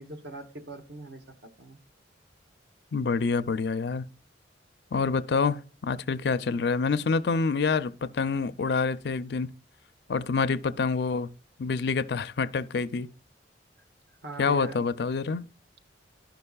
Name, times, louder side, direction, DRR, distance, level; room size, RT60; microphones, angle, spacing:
voice 1, 0.0-1.8 14.2-14.8, right 2 dB, 60° right, 1.0 m, -41 dB
voice 2, 2.9-4.1 4.9-9.5 10.1-11.3 11.6-13.1 14.4-15.5, left 4 dB, 60° left, 0.4 m, -27 dB
13.0 x 5.5 x 2.3 m
head